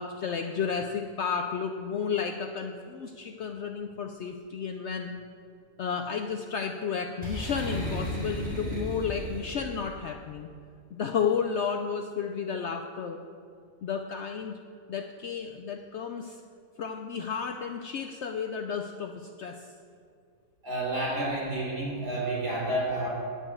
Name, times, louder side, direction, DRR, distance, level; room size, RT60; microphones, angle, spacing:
voice 1, 0.0-5.1 5.8-10.5 10.9-13.2 13.8-14.6 14.9-16.4 16.8-19.7, left 6 dB, 70° left, 5 dB, 0.6 m, -32 dB
Boom, 7.2-9.9, equal, 35° right, 2.3 m, -34 dB
voice 2, 20.6-23.1, right 1 dB, 85° right, -5 dB, 3.8 m, -30 dB
9.9 x 5.5 x 8.4 m, 2.3 s
omnidirectional pair, 1.7 m